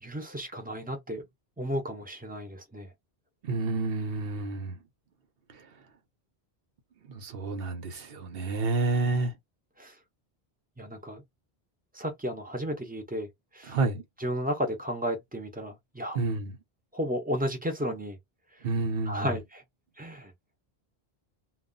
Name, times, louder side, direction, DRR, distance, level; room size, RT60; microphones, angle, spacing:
voice 1, 0.0-1.2 1.6-2.9 9.8-9.9 10.8-11.2 11.9-13.8 14.2-16.2 16.9-18.2 19.1-19.6 20.0-20.3, equal, 10° right, 0.7 m, -33 dB
voice 2, 3.4-4.8 5.5-5.7 7.1-9.4 13.6-14.0 16.1-16.6 18.6-19.3, right 3 dB, 65° right, 1.0 m, -29 dB
2.4 x 2.0 x 3.8 m
omnidirectional pair, 1.1 m